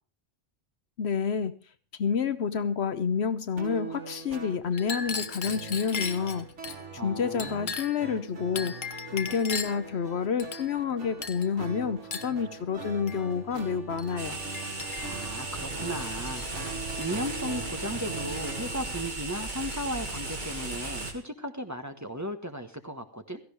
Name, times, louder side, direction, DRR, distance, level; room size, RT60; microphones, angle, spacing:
voice 1, 1.0-1.6 2.0-6.5 7.0-14.4, left 6 dB, 65° left, 1.0 m, -29 dB
sound 1, 3.6-18.8, right 4 dB, 80° right, 2.5 m, -42 dB
Chink clink, 4.7-6.8 7.4-8.1 8.6-9.9 10.4-10.9 11.2-11.5 12.1-12.4 13.1-13.2 14.0-14.1 14.5-15.2 16.0-16.6 16.9-17.2 18.3-19.0 19.7-19.9 20.1-21.0, left 5 dB, 45° left, 1.1 m, -37 dB
voice 2, 6.9-7.7 15.0-23.4, equal, 15° right, 1.3 m, -36 dB
sound 2, 14.2-21.1, right 2 dB, 40° right, 2.3 m, -36 dB
16.5 x 14.5 x 3.4 m
omnidirectional pair, 1.2 m